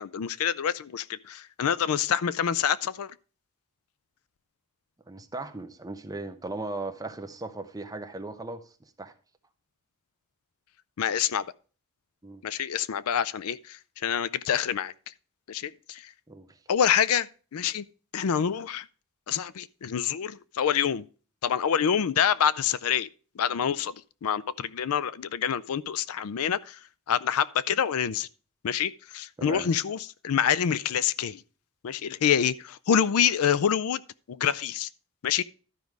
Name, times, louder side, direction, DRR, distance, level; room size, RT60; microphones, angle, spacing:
voice 1, 0.0-3.1 11.0-11.4 12.4-14.9 15.5-16.1 16.7-17.8 18.1-18.8 19.3-21.0 21.4-23.1 23.4-23.9 24.2-26.8 27.1-28.3 28.6-31.4 31.8-34.0 34.3-34.9 35.2-35.4, left 8 dB, 70° left, 0.4 m, -26 dB
voice 2, 5.1-8.6 9.0-9.1 12.2-12.4 16.3-16.5 29.4-29.7, right 2 dB, 15° right, 0.8 m, -37 dB
12.5 x 5.3 x 4.7 m
head